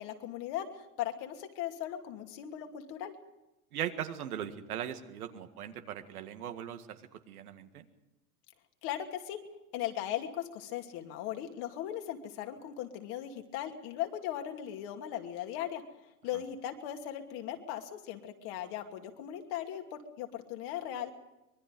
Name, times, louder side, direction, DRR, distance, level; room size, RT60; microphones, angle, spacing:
voice 1, 0.0-3.2 8.8-9.4 9.7-15.8 16.2-21.1, left 11 dB, 55° left, 4 dB, 2.6 m, -38 dB
voice 2, 3.7-7.0 7.3-7.9, right 10 dB, 80° right, 7 dB, 1.9 m, -39 dB
25.0 x 20.5 x 5.3 m, 0.97 s
hypercardioid pair, 105°, 44 cm